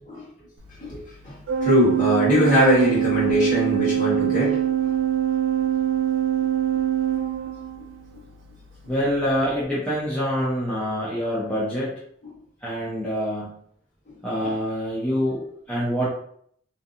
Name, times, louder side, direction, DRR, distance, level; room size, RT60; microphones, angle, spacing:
voice 1, 1.2-4.7, equal, 40° left, -7 dB, 1.3 m, -21 dB
Organ, 1.5-8.0, right 10 dB, 85° right, 0.3 m, -23 dB
voice 2, 8.9-11.9 12.6-13.6 14.2-16.1, equal, 5° left, -9 dB, 0.5 m, -26 dB
2.7 x 2.2 x 2.5 m, 0.65 s
head